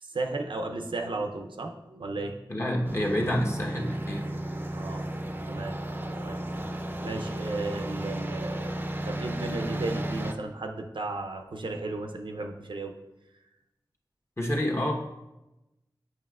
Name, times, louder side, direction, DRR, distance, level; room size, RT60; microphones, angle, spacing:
voice 1, 0.0-2.4 4.7-5.1 5.5-5.8 6.2-6.4 7.0-8.7 9.0-12.9, right 2 dB, 80° right, 3 dB, 0.6 m, -34 dB
voice 2, 2.5-4.3 14.4-14.9, left 1 dB, 35° left, 0 dB, 1.0 m, -28 dB
sound 1, 2.8-10.3, right 1 dB, 25° right, 0.5 m, -33 dB
7.7 x 5.5 x 2.4 m, 0.98 s
wide cardioid pair, 45°, 8 cm